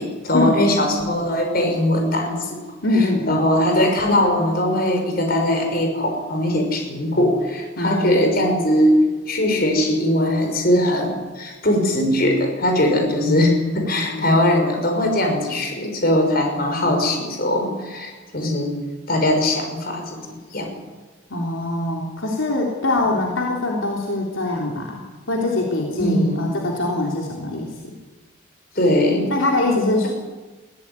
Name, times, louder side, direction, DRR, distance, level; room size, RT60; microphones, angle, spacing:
voice 1, 0.0-2.6 3.3-8.9 9.3-18.8 19.1-20.2 20.5-20.7 26.0-26.4 28.8-29.3, left 1 dB, 45° left, 3 dB, 6.0 m, -20 dB
voice 2, 2.8-3.4 7.8-8.2 13.8-14.4 16.5-17.0 21.3-27.9 29.3-30.1, left 2 dB, 75° left, -1 dB, 3.5 m, -23 dB
22.5 x 17.0 x 9.8 m, 1.2 s
head